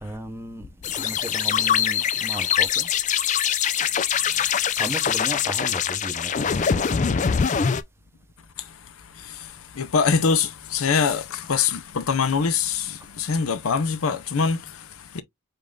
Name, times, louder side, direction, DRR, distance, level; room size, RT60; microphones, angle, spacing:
voice 1, 0.0-2.9 3.8-3.9 4.7-7.1, right 1 dB, 10° right, 0.7 m, -36 dB
sound 1, 0.8-7.8, left 8 dB, 35° left, 0.3 m, -23 dB
voice 2, 8.6-15.2, left 5 dB, 80° left, 0.6 m, -24 dB
5.2 x 2.4 x 3.7 m
head